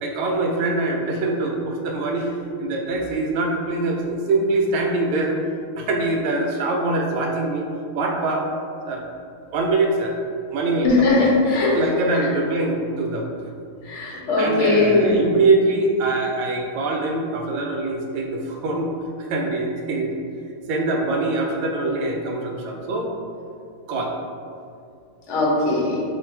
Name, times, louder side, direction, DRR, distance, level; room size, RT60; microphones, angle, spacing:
voice 1, 0.0-2.3 2.6-5.4 5.8-7.7 7.9-8.5 8.9-9.0 9.5-10.2 10.5-11.3 11.7-13.3 14.3-18.9 19.2-20.1 20.7-23.2 23.9-24.2, right 2 dB, 80° right, 1 dB, 1.4 m, -23 dB
voice 2, 10.8-11.7 13.8-15.2 25.3-26.0, left 3 dB, 55° left, -5 dB, 0.8 m, -19 dB
3.1 x 2.6 x 4.3 m, 2.4 s
omnidirectional pair, 2.4 m